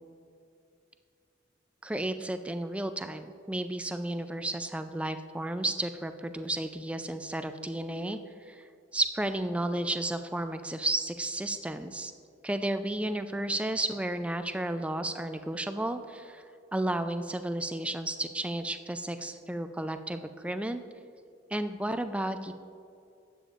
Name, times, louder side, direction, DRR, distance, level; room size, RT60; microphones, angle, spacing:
voice 1, 1.8-8.2 8.5-8.6 8.9-12.1 12.4-16.4 16.7-20.8 21.5-22.5, right 1 dB, 5° right, 9 dB, 0.3 m, -32 dB
12.0 x 8.4 x 2.5 m, 2.5 s
head